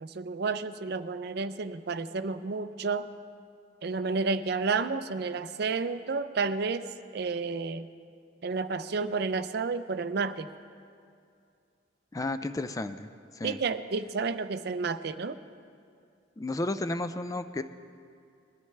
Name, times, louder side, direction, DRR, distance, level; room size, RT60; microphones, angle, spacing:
voice 1, 0.0-3.1 3.8-6.9 7.1-7.9 8.4-10.5 13.4-15.4, right 4 dB, 55° right, 12 dB, 0.5 m, -31 dB
voice 2, 12.1-13.6 16.4-17.6, left 2 dB, 20° left, 10 dB, 0.4 m, -33 dB
21.0 x 13.5 x 3.3 m, 2.4 s
head